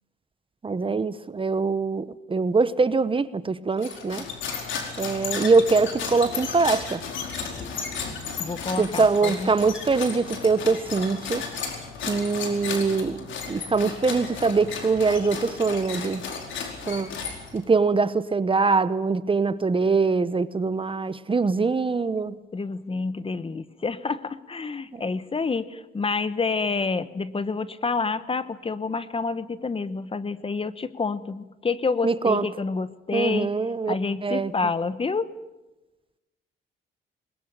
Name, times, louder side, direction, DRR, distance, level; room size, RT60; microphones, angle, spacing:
voice 1, 0.6-4.2 5.0-7.0 8.8-11.4 12.1-16.3 16.9-17.1 17.5-22.4 24.9-25.0 32.0-32.5 33.1-33.9 34.2-34.7, right 4 dB, 25° right, 15 dB, 1.0 m, -23 dB
sound 1, 3.8-17.7, left 5 dB, 75° left, 4.8 m, -34 dB
voice 2, 8.4-9.7 22.5-33.5 33.9-35.3, left 4 dB, 30° left, 15 dB, 1.1 m, -28 dB
21.0 x 20.5 x 8.9 m, 1.0 s
cardioid pair, 90°, 20 cm